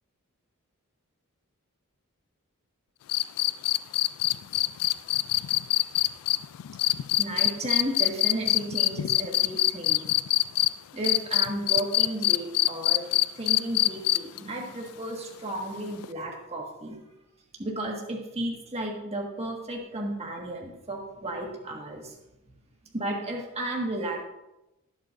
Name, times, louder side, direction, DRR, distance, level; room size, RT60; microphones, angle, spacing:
sound 1, 3.1-10.7 11.0-14.4 16.0-16.1, left 16 dB, 80° left, 0.3 m, -23 dB
voice 1, 7.2-10.0 10.9-13.0 13.3-17.0 17.6-22.1 22.9-24.2, right 1 dB, 30° right, -1 dB, 1.7 m, -33 dB
19.5 x 8.1 x 2.6 m, 0.94 s
head